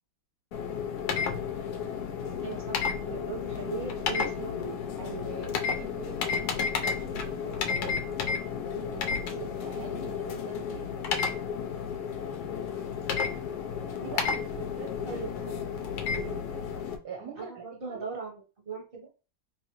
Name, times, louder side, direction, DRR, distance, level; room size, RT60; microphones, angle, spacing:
sound 1, 0.5-17.0, left 6 dB, 75° left, 0.9 m, -32 dB
voice 1, 2.4-4.8 9.7-9.9 13.2-13.4 15.0-15.7 17.3-19.1, right 4 dB, 35° right, 0 dB, 1.0 m, -39 dB
voice 2, 5.0-8.3 8.6-10.9 14.0-15.3 16.1-16.6 17.0-18.0, right 5 dB, 60° right, 2 dB, 1.1 m, -43 dB
3.2 x 3.2 x 3.0 m, 0.33 s
omnidirectional pair, 2.2 m